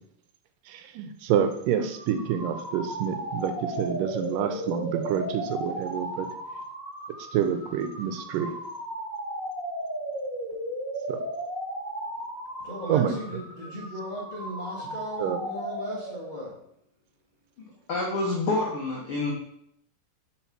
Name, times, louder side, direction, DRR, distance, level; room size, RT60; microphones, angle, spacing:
voice 1, 0.7-6.3 7.3-8.5 11.1-11.2 12.9-13.1 15.2-15.4, right 9 dB, 85° right, 7 dB, 2.3 m, -27 dB
sound 1, 1.8-16.5, right 1 dB, 10° right, 1.6 m, -35 dB
voice 2, 12.6-16.6, left 1 dB, 60° left, -5 dB, 0.5 m, -37 dB
voice 3, 17.9-19.3, left 2 dB, 75° left, -2 dB, 1.2 m, -27 dB
5.7 x 4.7 x 5.8 m, 0.73 s
omnidirectional pair, 3.9 m